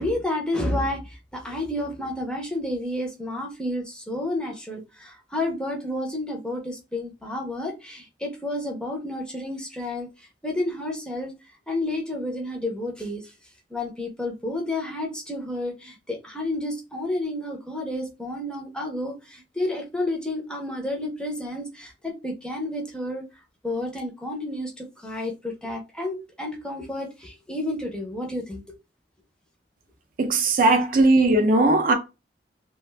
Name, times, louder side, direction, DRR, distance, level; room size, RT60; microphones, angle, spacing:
voice 1, 0.0-11.3 11.7-13.3 13.7-23.2 23.6-28.6, left 1 dB, 5° left, 0.6 m, -30 dB
voice 2, 30.2-31.9, right 2 dB, 50° right, 0.5 m, -18 dB
2.4 x 2.2 x 3.2 m
head